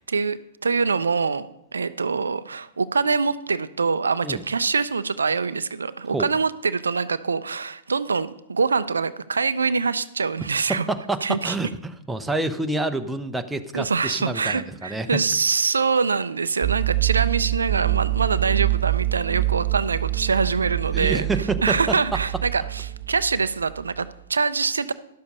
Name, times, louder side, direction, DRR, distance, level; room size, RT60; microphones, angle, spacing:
voice 1, 0.1-1.5 1.7-10.9 11.2-11.5 13.7-21.2 21.6-24.9, right 4 dB, 85° right, 14 dB, 0.4 m, -24 dB
voice 2, 10.7-15.2 20.9-21.9, right 2 dB, 5° right, 7 dB, 0.7 m, -28 dB
sound 1, 16.6-24.0, right 17 dB, 55° right, 0.8 m, -26 dB
11.5 x 6.9 x 5.4 m, 0.81 s
hypercardioid pair, 115°, 0 cm